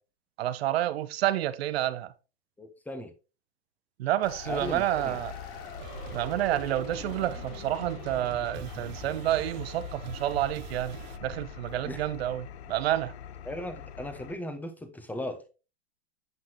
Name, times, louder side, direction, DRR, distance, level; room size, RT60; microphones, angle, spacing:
voice 1, 0.4-2.1 4.0-5.3 6.1-13.2, right 13 dB, 70° right, 0.8 m, -29 dB
voice 2, 2.6-3.1 4.4-5.2 11.9-12.0 13.5-15.5, left 1 dB, 5° left, 1.0 m, -37 dB
sound 1, 4.2-12.7, left 3 dB, 55° left, 3.0 m, -44 dB
Engine, 4.5-14.3, left 8 dB, 80° left, 0.7 m, -44 dB
sound 2, 5.8-11.2, right 13 dB, 45° right, 0.5 m, -47 dB
8.0 x 5.7 x 3.0 m
hypercardioid pair, 120°, 32 cm